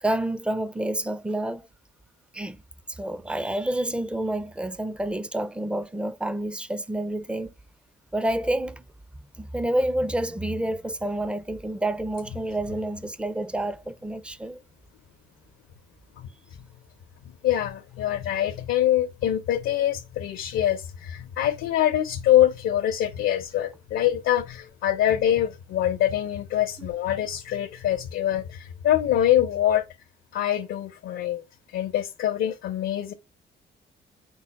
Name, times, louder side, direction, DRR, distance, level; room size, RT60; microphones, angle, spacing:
voice 1, 0.0-1.7 2.3-2.6 2.9-7.5 8.1-8.8 9.4-14.6 26.8-26.9, right 1 dB, 5° right, 0.4 m, -28 dB
voice 2, 17.4-29.9 30.3-31.4 31.7-33.1, left 12 dB, 85° left, 0.7 m, -24 dB
5.4 x 2.1 x 4.0 m
cardioid pair, 90°, 20 cm